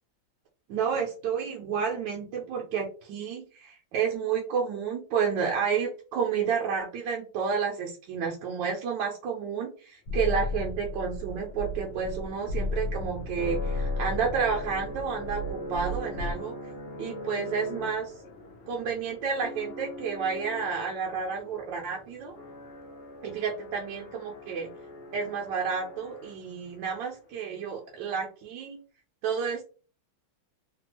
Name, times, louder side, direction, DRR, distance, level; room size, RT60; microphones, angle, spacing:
voice 1, 0.7-16.5 17.0-18.1 18.7-22.3 23.2-24.7 25.1-28.8 29.2-29.6, right 6 dB, 75° right, 0 dB, 1.2 m, -30 dB
sound 1, 10.1-16.3, left 2 dB, 70° left, 1.0 m, -34 dB
sound 2, 10.7-26.8, equal, 90° left, 0.5 m, -42 dB
3.3 x 2.3 x 3.0 m, 0.37 s
omnidirectional pair, 2.2 m